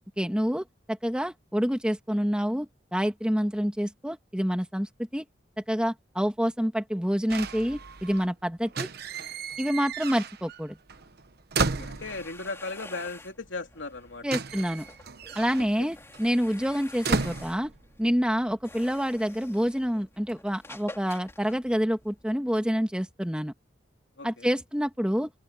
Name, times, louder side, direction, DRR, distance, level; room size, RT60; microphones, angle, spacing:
voice 1, 0.2-5.3 5.7-8.9 9.6-10.8 14.2-14.9 15.4-17.7 18.0-23.5 24.2-25.3, equal, 5° right, 1.9 m, -27 dB
sound 1, 7.3-8.3 8.6-10.6 10.9-12.5 13.5-13.6 13.8-18.2 18.5-19.0, right 4 dB, 55° right, 1.1 m, -34 dB
voice 2, 11.6-14.2 15.8-15.9 24.2-24.5, left 3 dB, 70° left, 3.5 m, -37 dB
sound 2, 11.7-22.4, left 2 dB, 15° left, 3.2 m, -49 dB
open air
head